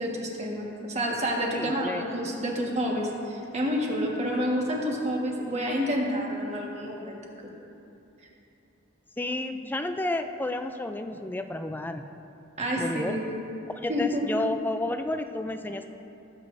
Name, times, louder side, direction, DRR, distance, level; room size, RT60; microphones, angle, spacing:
voice 1, 0.0-7.2 12.6-13.5 13.9-14.2, equal, 35° right, -1 dB, 1.4 m, -29 dB
voice 2, 1.5-2.1 9.2-12.1 12.8-13.2 13.8-15.9, left 2 dB, 10° left, 7 dB, 0.3 m, -31 dB
17.5 x 8.1 x 2.6 m, 2.8 s
head